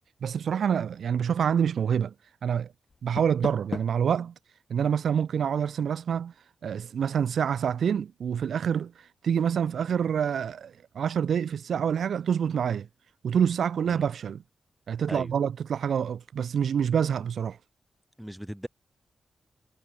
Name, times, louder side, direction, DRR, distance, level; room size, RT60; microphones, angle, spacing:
voice 1, 0.2-2.1 2.4-2.7 3.0-4.3 4.7-6.3 6.6-12.9 13.2-14.4 14.9-17.6, right 8 dB, 80° right, 1.0 m, -27 dB
Door, 2.9-4.1, left 4 dB, 45° left, 2.0 m, -37 dB
voice 2, 18.2-18.7, equal, 5° right, 5.7 m, -37 dB
cardioid pair, 90°, 0 cm